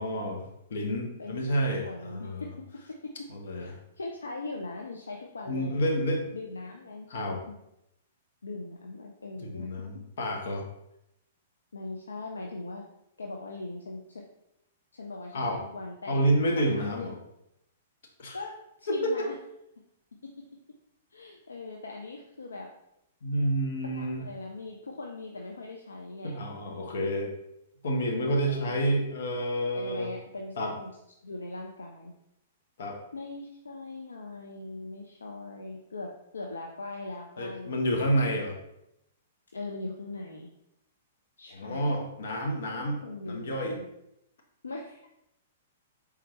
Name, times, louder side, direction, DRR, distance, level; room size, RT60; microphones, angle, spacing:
voice 1, 0.0-2.5 3.3-3.7 5.5-6.2 7.1-7.4 9.4-10.6 15.3-15.6 16.1-17.2 18.2-18.4 18.9-19.3 23.2-24.2 26.2-27.4 27.8-30.1 30.6-30.7 32.8-33.0 37.4-38.6 41.5-43.8, equal, 65° left, 2 dB, 0.9 m, -29 dB
voice 2, 1.8-2.5 3.0-3.1 3.6-5.8 6.3-7.1 7.5-7.6 8.4-9.7 11.7-12.8 13.2-14.2 14.9-16.2 16.5-17.1 18.3-18.5 18.8-19.4 21.1-22.7 23.8-26.4 28.4-28.8 29.7-30.9 31.2-32.1 33.1-38.0 39.5-40.5 41.4-41.9 43.0-43.9 44.6-45.0, left 2 dB, 80° left, 1 dB, 0.5 m, -40 dB
4.5 x 3.5 x 3.0 m, 0.82 s
figure-of-eight pair, 110°, 0 cm